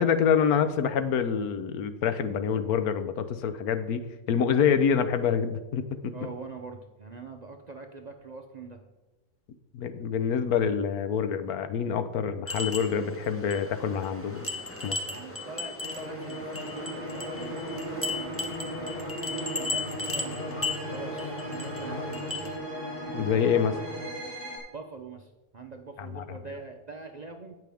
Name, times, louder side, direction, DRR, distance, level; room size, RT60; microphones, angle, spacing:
voice 1, 0.0-6.1 9.7-14.5 14.8-15.0 23.1-23.8 26.0-26.2, left 7 dB, 80° left, 10 dB, 1.3 m, -26 dB
voice 2, 6.1-8.8 15.1-22.6 24.7-27.6, right 4 dB, 50° right, 4 dB, 0.5 m, -43 dB
sound 1, 12.5-22.6, left 2 dB, 10° left, 0.8 m, -36 dB
sound 2, 15.8-24.6, equal, 40° left, 3.8 m, -36 dB
16.5 x 5.9 x 3.5 m, 1.1 s
omnidirectional pair, 1.6 m